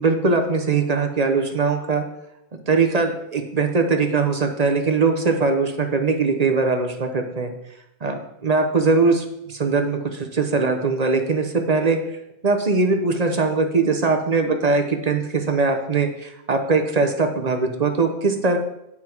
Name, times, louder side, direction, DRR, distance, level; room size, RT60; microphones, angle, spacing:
voice 1, 0.0-2.0 2.7-7.5 8.0-12.0 12.4-18.6, right 4 dB, 35° right, 5 dB, 0.8 m, -21 dB
9.1 x 5.9 x 4.5 m, 0.83 s
omnidirectional pair, 1.3 m